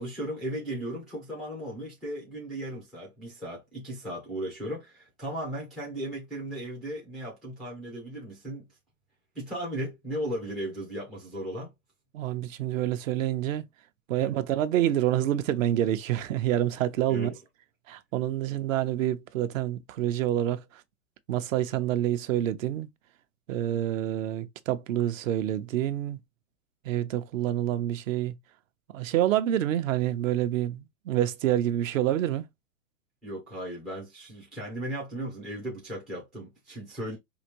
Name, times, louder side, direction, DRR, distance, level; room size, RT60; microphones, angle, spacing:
voice 1, 0.0-8.6 9.3-11.7 14.2-14.3 17.1-17.4 33.2-37.2, right 1 dB, ahead, 0.3 m, -36 dB
voice 2, 12.1-13.6 14.1-17.3 17.9-20.6 21.3-22.9 23.5-26.2 26.8-28.3 28.9-32.4, right 12 dB, 60° right, 0.8 m, -27 dB
4.9 x 2.6 x 2.9 m
hypercardioid pair, 145°, 45 cm